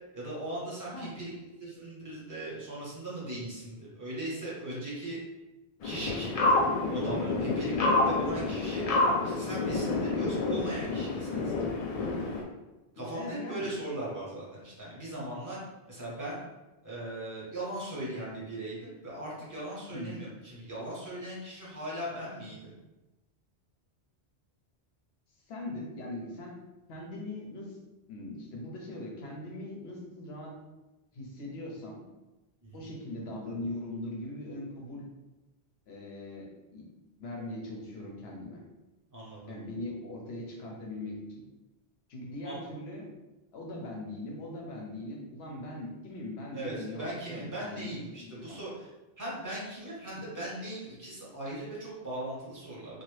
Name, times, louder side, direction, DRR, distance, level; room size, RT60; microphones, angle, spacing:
voice 1, 0.1-1.3 1.6-5.2 5.8-6.3 6.9-8.8 9.2-11.7 12.9-15.6 15.9-16.4 16.8-22.7 32.6-32.9 39.1-39.5 42.4-42.7 46.5-48.9 49.2-53.0, right 1 dB, 20° right, -7 dB, 1.0 m, -39 dB
sound 1, 5.8-12.4, left 2 dB, 55° left, 0.4 m, -28 dB
voice 2, 13.0-13.7 19.9-20.2 25.5-26.5 26.9-27.8 28.1-30.5 31.1-32.1 32.7-35.1 35.9-36.9 37.2-38.6 39.5-41.4 42.1-43.1 43.5-48.6 50.1-50.2, left 1 dB, 75° left, -1 dB, 1.0 m, -40 dB
2.8 x 2.3 x 3.2 m, 1.0 s
omnidirectional pair, 1.1 m